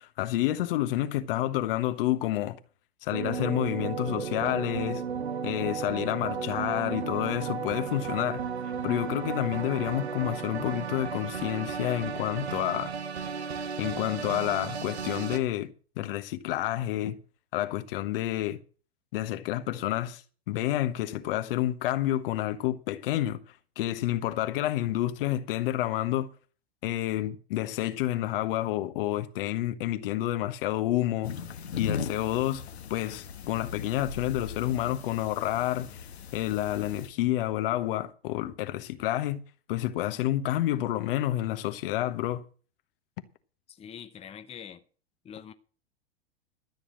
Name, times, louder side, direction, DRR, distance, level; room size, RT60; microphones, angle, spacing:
voice 1, 0.0-2.6 3.0-5.0 5.4-8.4 8.8-12.9 13.8-15.7 16.0-17.2 17.5-18.6 19.1-20.2 20.5-23.4 23.8-26.3 26.8-31.3 31.8-32.6 32.9-36.1 36.3-39.4 39.7-42.4, left 14 dB, 60° left, 1.3 m, -29 dB
sound 1, 3.1-15.4, right 6 dB, 85° right, 1.3 m, -34 dB
sound 2, 31.2-37.1, left 6 dB, 80° left, 1.3 m, -39 dB
voice 2, 43.7-44.8 45.2-45.5, left 8 dB, 20° left, 0.8 m, -44 dB
13.5 x 6.9 x 7.7 m
hypercardioid pair, 100°, 31 cm